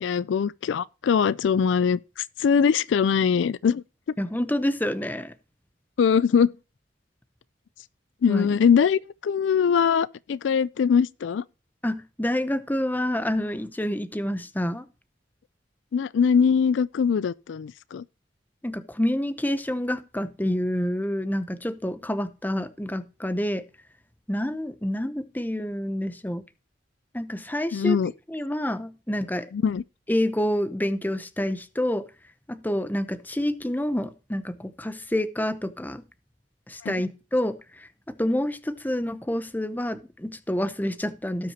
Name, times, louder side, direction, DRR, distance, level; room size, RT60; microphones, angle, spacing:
voice 1, 0.0-3.8 6.0-6.5 8.2-11.4 15.9-18.0 27.7-28.1 29.5-29.8 36.8-37.0, left 6 dB, 75° left, 0.4 m, -22 dB
voice 2, 4.2-5.3 8.3-8.5 11.8-14.9 18.6-23.6 24.3-26.4 27.1-28.0 28.3-29.5 30.1-32.1 32.5-36.0 36.7-41.5, left 1 dB, 10° left, 0.8 m, -28 dB
17.5 x 6.0 x 2.9 m
head